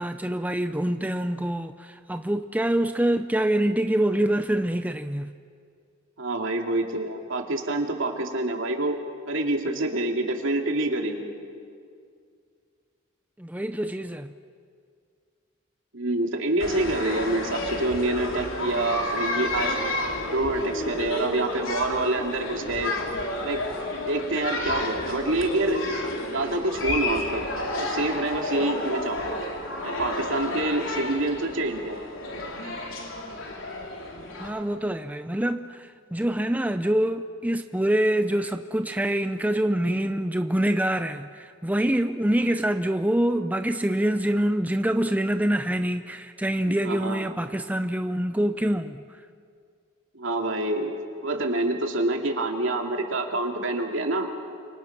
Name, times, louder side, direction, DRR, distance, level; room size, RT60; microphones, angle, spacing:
voice 1, 0.0-5.3 13.4-14.3 34.4-49.0, right 1 dB, 10° right, 0.6 m, -25 dB
voice 2, 6.2-9.0 9.3-11.3 15.9-19.9 20.2-22.9 23.4-23.7 24.1-25.8 26.3-27.4 27.8-29.4 29.8-32.0 46.7-47.2 50.1-54.3, right 2 dB, 65° right, 2.9 m, -27 dB
sound 1, 16.6-34.5, left 1 dB, 70° left, 3.8 m, -31 dB
30.0 x 27.0 x 6.0 m
head